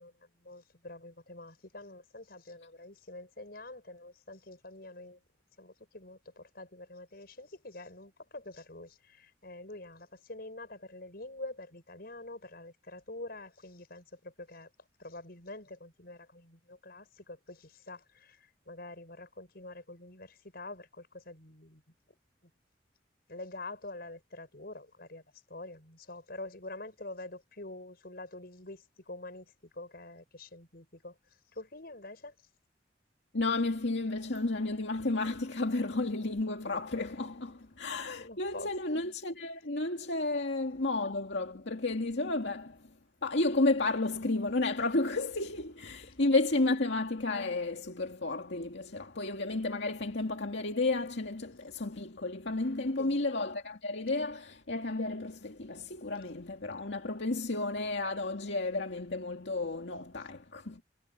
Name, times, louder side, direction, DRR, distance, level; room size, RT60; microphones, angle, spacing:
voice 1, 0.0-5.2 5.6-14.7 15.0-21.8 22.4-22.5 23.3-31.2 31.5-32.3 38.2-38.7 53.0-53.2, left 2 dB, 60° left, 6.5 m, -46 dB
voice 2, 33.3-42.9 43.2-60.8, left 2 dB, 80° left, 2.1 m, -32 dB
head